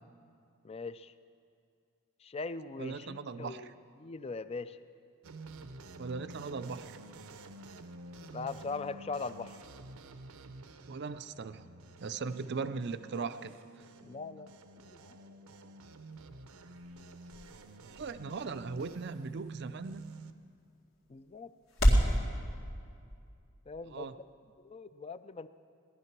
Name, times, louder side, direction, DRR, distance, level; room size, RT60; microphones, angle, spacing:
voice 1, 0.6-1.1 2.2-3.7 4.0-4.8 8.3-9.6 14.0-14.5 14.8-15.2 21.1-21.5 23.7-24.1 24.6-25.5, left 4 dB, 25° left, 13 dB, 0.3 m, -40 dB
voice 2, 2.8-3.7 6.0-6.9 10.9-11.7 12.0-13.6 17.8-20.0 23.9-24.1, right 4 dB, 50° right, 12 dB, 0.4 m, -39 dB
sound 1, 5.2-20.3, right 2 dB, 85° right, 0.7 m, -49 dB
sound 2, 15.9-22.2, equal, 65° left, 2.3 m, -33 dB
18.0 x 11.5 x 6.0 m, 2.4 s
head